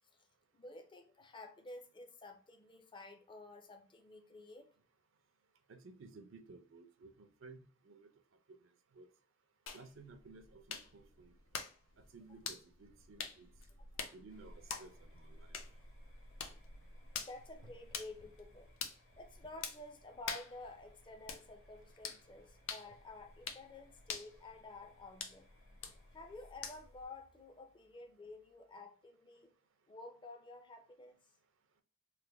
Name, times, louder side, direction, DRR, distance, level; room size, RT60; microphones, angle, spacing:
voice 1, 0.5-4.7 17.2-18.7 19.2-25.5 26.1-29.5 29.9-31.2, left 2 dB, 25° left, 0.5 m, -52 dB
voice 2, 5.7-8.1 8.5-9.1 9.7-11.3 12.0-13.5 14.1-15.6 17.6-17.7 22.9-23.0, right 3 dB, 70° right, 0.5 m, -56 dB
sound 1, 9.7-27.1, left 6 dB, 75° left, 0.6 m, -48 dB
sound 2, 14.3-28.8, left 1 dB, 90° left, 1.2 m, -68 dB
3.2 x 2.1 x 3.3 m
head